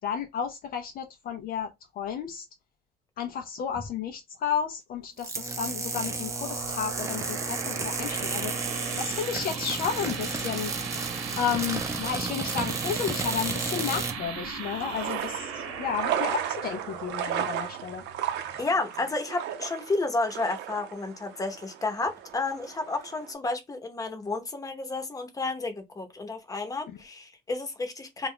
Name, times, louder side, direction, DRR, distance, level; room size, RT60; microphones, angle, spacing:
voice 1, 0.0-2.5 3.2-10.7 11.3-18.0, left 7 dB, 50° left, 0.5 m, -32 dB
sound 1, 5.2-14.2, right 3 dB, 15° right, 0.6 m, -32 dB
sound 2, 6.0-19.1, right 6 dB, 90° right, 0.9 m, -38 dB
sound 3, 14.6-23.3, right 10 dB, 70° right, 0.6 m, -35 dB
voice 2, 18.6-28.3, left 3 dB, 20° left, 0.8 m, -31 dB
2.3 x 2.2 x 3.5 m
supercardioid pair, 90°, 19 cm